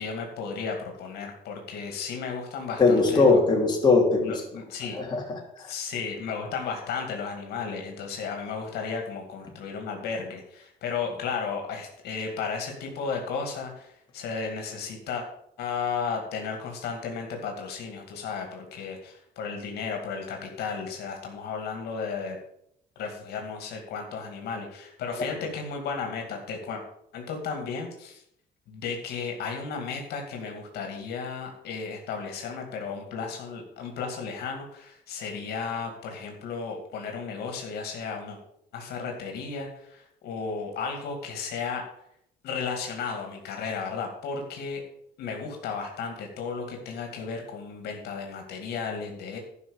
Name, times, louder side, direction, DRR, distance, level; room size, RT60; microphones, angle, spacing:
voice 1, 0.0-3.4 4.2-5.0 5.6-15.3 15.6-22.4 23.0-26.8 27.1-28.2 28.7-38.4 38.7-41.8 42.4-44.8 45.2-49.4, left 5 dB, 75° left, 2 dB, 2.3 m, -34 dB
voice 2, 2.8-4.3 4.9-5.7, left 3 dB, 25° left, -1 dB, 3.1 m, -21 dB
11.0 x 5.9 x 7.1 m, 0.74 s
cardioid pair, 110°, 17 cm